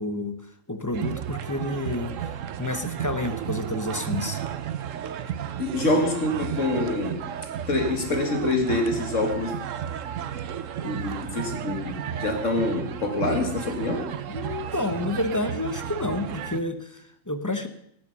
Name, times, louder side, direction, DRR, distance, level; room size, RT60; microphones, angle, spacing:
voice 1, 0.0-4.4 14.3-17.7, left 2 dB, 15° left, 8 dB, 0.9 m, -30 dB
sound 1, 0.9-16.6, right 9 dB, 85° right, 1.1 m, -33 dB
voice 2, 5.6-7.2 7.7-9.5 10.8-14.1, left 2 dB, 80° left, 3 dB, 2.4 m, -26 dB
17.5 x 7.7 x 6.7 m, 0.70 s
omnidirectional pair, 1.3 m